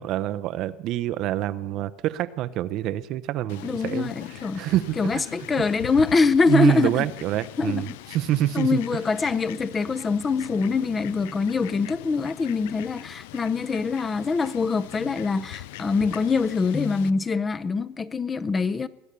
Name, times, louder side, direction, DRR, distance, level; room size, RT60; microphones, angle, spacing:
voice 1, 0.0-4.1 4.6-5.2 6.5-8.8, right 13 dB, 55° right, 0.6 m, -26 dB
Fowl, 3.5-17.1, left 16 dB, 75° left, 0.4 m, -41 dB
voice 2, 3.6-4.7 5.0-7.0 7.6-7.9 8.5-18.9, left 4 dB, 25° left, 0.7 m, -24 dB
20.5 x 8.4 x 6.8 m
hypercardioid pair, 95°, 0 cm